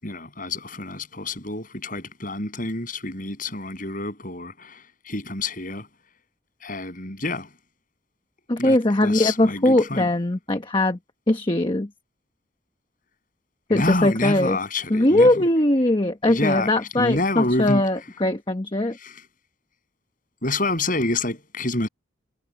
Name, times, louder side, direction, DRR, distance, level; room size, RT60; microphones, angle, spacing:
voice 1, 0.0-5.9 6.6-7.5 8.6-8.8 9.0-10.1 13.7-15.4 16.3-17.8 19.0-19.2 20.4-21.9, left 2 dB, 45° left, 7.7 m, -28 dB
voice 2, 8.5-11.0 11.3-11.9 13.7-14.6 14.9-19.0, left 1 dB, 25° left, 1.2 m, -20 dB
head